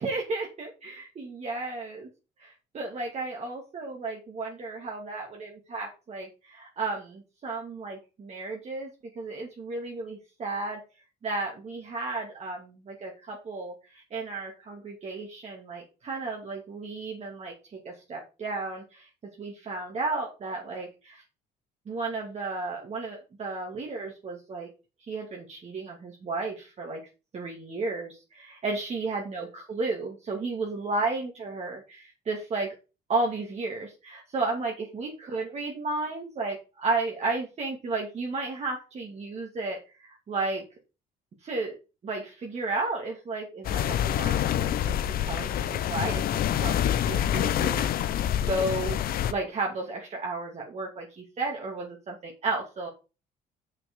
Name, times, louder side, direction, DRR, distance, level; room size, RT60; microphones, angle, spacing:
voice 1, 0.0-2.1 2.4-10.8 11.2-19.1 19.4-21.2 21.9-24.7 25.1-27.0 27.3-32.7 33.1-40.6 41.4-41.7 42.0-45.0 45.2-49.0 49.3-52.9, right 3 dB, 40° right, -1 dB, 2.4 m, -33 dB
sound 1, 43.6-49.3, left 10 dB, 60° left, 0.8 m, -26 dB
6.2 x 6.1 x 6.1 m, 0.31 s
cardioid pair, 110°, 17 cm